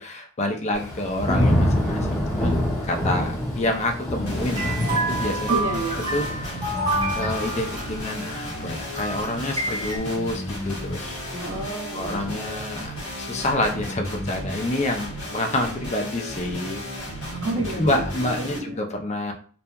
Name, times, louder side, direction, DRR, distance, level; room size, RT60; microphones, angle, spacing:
voice 1, 0.0-5.8 6.1-6.2 7.1-11.2 11.9-16.8 17.7-19.3, left 1 dB, 30° left, 4 dB, 0.5 m, -28 dB
Thunder / Rain, 0.7-11.7 12.1-12.6, left 1 dB, 15° left, 0.9 m, -28 dB
sound 1, 4.3-18.6, equal, 70° left, 0.9 m, -34 dB
sound 2, 4.5-10.0, right 2 dB, 20° right, 0.8 m, -29 dB
voice 2, 5.5-6.0 11.3-12.5 17.3-18.8, right 2 dB, 60° right, 0 dB, 0.7 m, -30 dB
2.8 x 2.2 x 2.3 m, 0.43 s
head